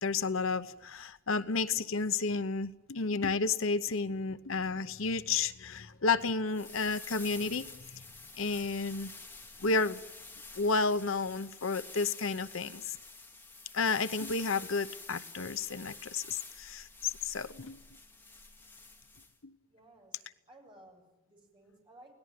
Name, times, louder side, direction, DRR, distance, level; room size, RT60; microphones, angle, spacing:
voice 1, 0.0-8.0 8.4-9.1 9.6-10.0 10.5-13.0 13.7-17.8 19.4-19.5, left 4 dB, 75° left, 13 dB, 0.9 m, -32 dB
sound 1, 6.5-19.3, left 3 dB, 10° left, 2.3 m, -49 dB
voice 2, 19.7-22.1, right 1 dB, 25° right, 2 dB, 8.0 m, -58 dB
29.5 x 18.5 x 9.3 m, 1.0 s
head